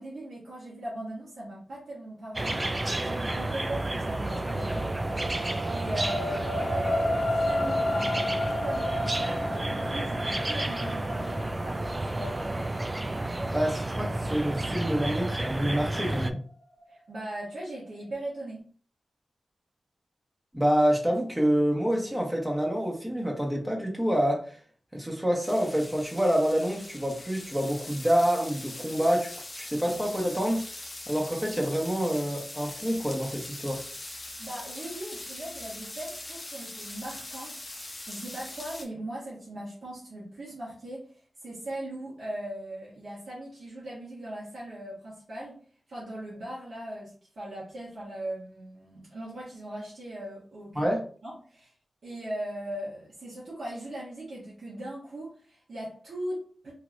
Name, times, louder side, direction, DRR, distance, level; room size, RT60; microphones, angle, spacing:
voice 1, 0.0-2.7 2.9-4.9 5.7-12.7 16.9-18.6 34.4-45.6 45.9-50.9 51.2-51.7 52.0-56.7, right 1 dB, 75° right, 1.4 m, -39 dB
sound 1, 2.4-16.3, right 1 dB, 30° right, 0.3 m, -31 dB
sound 2, 3.9-16.3 16.8-16.9, left 1 dB, 60° left, 0.4 m, -33 dB
voice 2, 13.5-16.4 20.5-24.4 24.9-30.6 31.1-33.8 50.7-51.0, equal, 10° right, 1.1 m, -27 dB
sound 3, 25.4-38.8, left 2 dB, 35° left, 0.7 m, -42 dB
3.2 x 2.8 x 2.5 m
cardioid pair, 60°, 0 cm